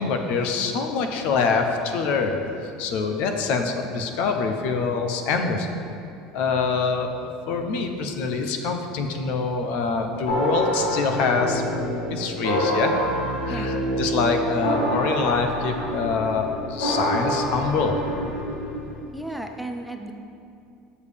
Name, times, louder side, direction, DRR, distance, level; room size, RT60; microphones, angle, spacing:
voice 1, 0.0-5.7 6.3-7.1 7.5-13.0 13.5-18.0, left 4 dB, 65° left, 5 dB, 0.7 m, -25 dB
sound 1, 10.3-19.0, equal, 85° left, 1.5 m, -27 dB
voice 2, 13.5-13.9 19.1-20.1, right 1 dB, ahead, 4 dB, 0.4 m, -34 dB
6.9 x 6.5 x 3.5 m, 2.5 s
supercardioid pair, 110°, 2 cm